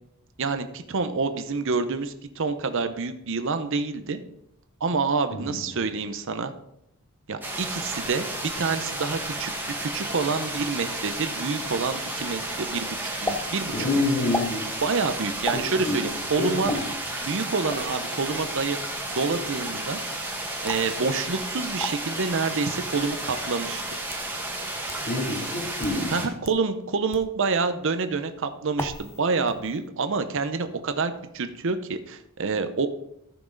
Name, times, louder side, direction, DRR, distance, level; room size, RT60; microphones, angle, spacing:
voice 1, 0.4-4.2 4.8-6.5 7.3-14.0 14.8-16.7 17.2-18.8 19.1-20.0 20.6-23.8 26.1-32.9, right 4 dB, 65° right, 9 dB, 0.7 m, -27 dB
voice 2, 5.3-5.6 13.8-14.7 15.5-16.0 16.4-16.8 25.1-26.1, left 2 dB, 45° left, -5 dB, 2.5 m, -27 dB
sound 1, 7.4-26.3, right 1 dB, 10° right, 1.6 m, -32 dB
sound 2, 13.3-13.4 14.3-14.5 15.5-15.7 16.7-16.8 17.7-18.0 20.7-20.9 21.8-21.9 22.9-23.0 23.8-24.3 24.9-25.0 25.7-26.0 26.4-26.6 27.1-27.3 28.8-29.2 29.5-29.9, left 2 dB, 10° left, 0.7 m, -32 dB
14.0 x 6.0 x 3.9 m, 0.77 s
head